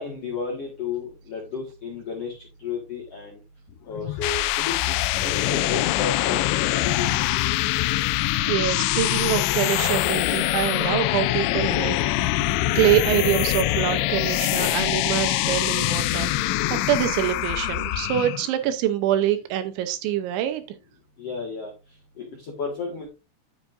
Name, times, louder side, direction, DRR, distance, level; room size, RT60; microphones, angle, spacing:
voice 1, 0.0-3.4 3.8-7.2 21.2-21.7 22.2-23.1, left 5 dB, 60° left, 1.6 m, -33 dB
sound 1, 3.9-18.5, left 15 dB, 85° left, 2.5 m, -24 dB
voice 2, 8.1-12.4 12.8-20.6, right 12 dB, 80° right, 2.9 m, -25 dB
10.5 x 7.2 x 2.6 m
omnidirectional pair, 5.6 m